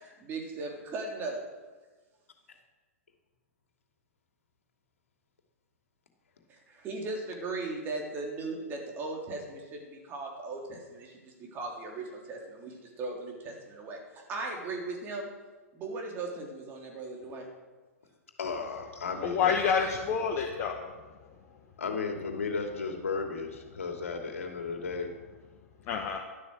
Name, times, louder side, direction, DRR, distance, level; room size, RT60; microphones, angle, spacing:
voice 1, 0.2-1.5 6.8-9.6 10.1-11.1 11.5-12.7 13.0-14.0 14.3-15.3 15.8-17.5, right 3 dB, 25° right, 0 dB, 3.6 m, -37 dB
voice 2, 18.4-19.6 20.4-20.5 21.8-25.1, left 4 dB, 65° left, 4 dB, 2.7 m, -34 dB
voice 3, 19.2-20.9 25.9-26.2, left 6 dB, 35° left, 2 dB, 1.4 m, -28 dB
12.5 x 12.5 x 6.4 m, 1.3 s
figure-of-eight pair, 110°, 8 cm